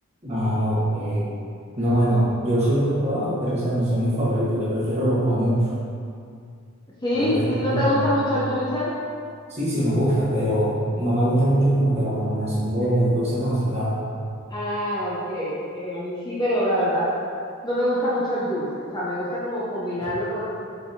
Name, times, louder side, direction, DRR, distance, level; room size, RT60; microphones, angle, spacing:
voice 1, 0.2-1.3 1.8-5.7 7.1-8.1 9.5-14.0 20.0-20.1, right 1 dB, 30° right, -9 dB, 1.1 m, -22 dB
voice 2, 7.0-8.9 14.5-17.1 17.6-20.4, equal, 20° left, -8 dB, 0.5 m, -25 dB
4.5 x 3.9 x 2.6 m, 2.3 s
head